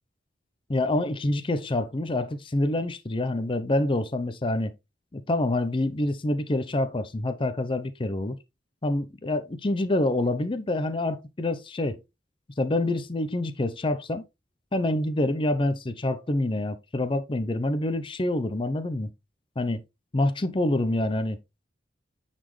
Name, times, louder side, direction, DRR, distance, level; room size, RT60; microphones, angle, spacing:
voice 1, 0.7-4.7 5.1-8.4 8.8-12.0 12.6-14.2 14.7-19.1 19.6-19.8 20.1-21.4, left 1 dB, 30° left, 0.6 m, -26 dB
9.4 x 4.2 x 3.1 m
head